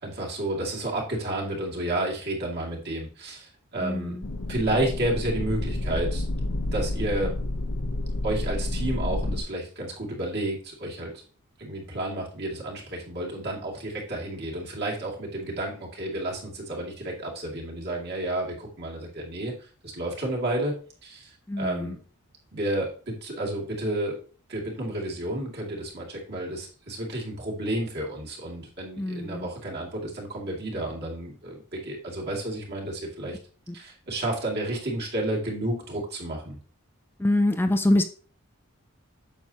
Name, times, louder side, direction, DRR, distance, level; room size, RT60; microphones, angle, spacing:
voice 1, 0.0-4.2 4.5-6.2 6.7-7.3 8.2-11.2 11.6-20.7 21.0-22.0 22.5-24.2 24.5-33.4 33.7-36.6, right 1 dB, 50° right, -2 dB, 2.6 m, -31 dB
voice 2, 3.8-4.2 21.5-21.9 29.0-29.5 37.2-38.0, left 1 dB, 10° left, 7 dB, 0.4 m, -24 dB
sound 1, 4.2-9.4, left 1 dB, 90° left, 0.8 m, -29 dB
8.9 x 6.9 x 2.9 m, 0.40 s
head